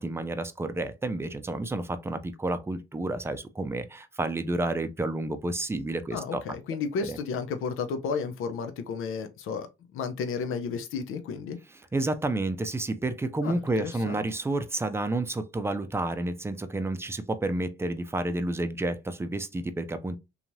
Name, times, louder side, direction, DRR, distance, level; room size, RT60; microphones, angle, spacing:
voice 1, 0.0-6.4 7.1-7.2 11.9-20.2, right 2 dB, 10° right, 0.4 m, -30 dB
voice 2, 6.1-9.7 9.9-11.6 13.4-14.2, left 5 dB, 80° left, 0.6 m, -32 dB
2.9 x 2.4 x 2.6 m
cardioid pair, 75°, 21 cm